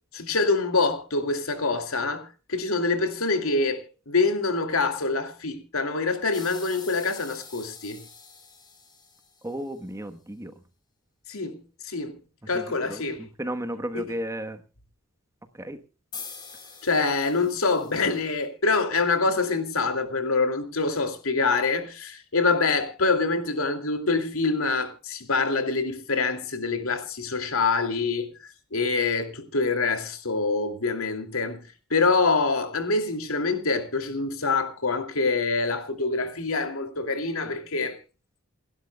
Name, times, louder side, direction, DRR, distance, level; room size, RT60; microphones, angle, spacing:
voice 1, 0.1-8.0 11.3-12.1 12.5-13.2 16.8-28.3 28.7-31.6 31.9-38.0, left 3 dB, 85° left, 2.6 m, -25 dB
sound 1, 6.3-9.8 16.1-18.4, left 5 dB, 20° left, 4.0 m, -45 dB
voice 2, 9.4-10.5 12.5-14.6 15.6-15.8, right 1 dB, 15° right, 1.1 m, -34 dB
28.5 x 12.0 x 2.2 m
head